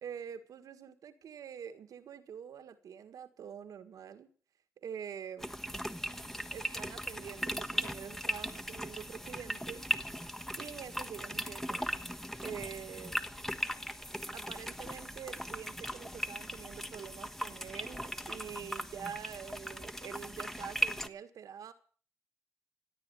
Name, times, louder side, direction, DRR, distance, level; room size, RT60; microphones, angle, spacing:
voice 1, 0.0-4.3 4.8-5.5 6.5-9.9 10.6-11.8 12.4-13.2 14.3-21.7, right 8 dB, 85° right, 10 dB, 1.6 m, -46 dB
sound 1, 5.4-21.1, equal, 5° left, 1.3 m, -38 dB
17.0 x 9.4 x 8.3 m, 0.43 s
cardioid pair, 60°, 6 cm